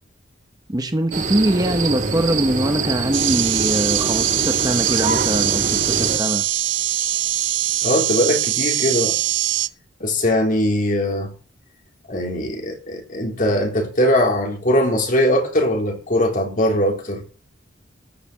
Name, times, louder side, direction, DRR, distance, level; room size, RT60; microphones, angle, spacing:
voice 1, 0.7-6.4, right 1 dB, 20° right, 1.0 m, -22 dB
sound 1, 1.1-6.2, right 4 dB, 45° right, 2.3 m, -24 dB
sound 2, 3.1-9.7, right 13 dB, 80° right, 0.7 m, -22 dB
voice 2, 7.8-9.2 10.0-11.3 12.1-17.2, left 1 dB, 45° left, 3.8 m, -20 dB
14.0 x 6.8 x 7.3 m
head